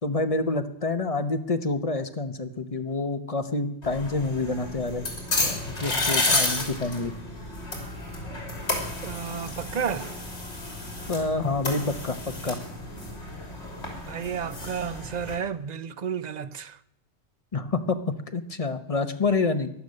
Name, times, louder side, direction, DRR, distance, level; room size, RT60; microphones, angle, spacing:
voice 1, 0.0-5.1 5.4-7.1 11.1-12.6 17.5-18.0 18.3-19.7, left 3 dB, 30° left, 1.0 m, -27 dB
sound 1, 3.8-15.4, left 2 dB, 65° left, 3.6 m, -31 dB
voice 2, 9.0-10.1 14.1-16.8, right 7 dB, 45° right, 0.6 m, -32 dB
14.5 x 11.0 x 6.5 m
omnidirectional pair, 1.2 m